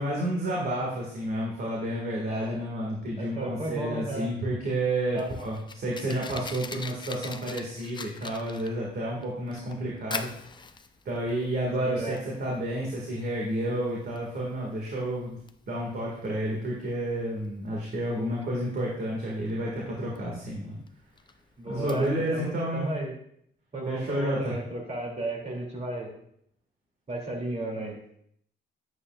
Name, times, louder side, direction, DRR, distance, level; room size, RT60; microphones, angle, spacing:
voice 1, 0.0-10.3 11.1-15.4 15.7-20.8 21.7-22.9 23.9-24.5, right 1 dB, 55° right, -3 dB, 2.1 m, -30 dB
voice 2, 3.2-4.3 5.1-5.3 11.8-12.2 21.6-23.1 23.7-26.1 27.1-28.1, right 2 dB, 35° right, 0 dB, 2.8 m, -34 dB
Fire, 4.8-22.5, left 4 dB, 25° left, 0.5 m, -44 dB
9.8 x 8.4 x 2.5 m, 0.71 s
cardioid pair, 90°, 20 cm